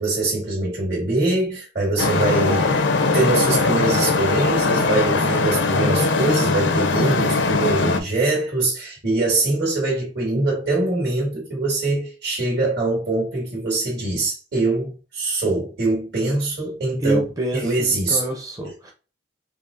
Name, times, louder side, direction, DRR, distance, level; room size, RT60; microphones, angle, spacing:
voice 1, 0.0-17.2 17.5-18.2 18.6-18.7, right 2 dB, 65° right, 1.9 m, -23 dB
Traffic noise roadway noise, 2.0-8.0, left 3 dB, 80° left, 0.6 m, -20 dB
voice 2, 17.0-18.9, right 1 dB, 20° right, 0.6 m, -26 dB
5.1 x 2.7 x 2.6 m
head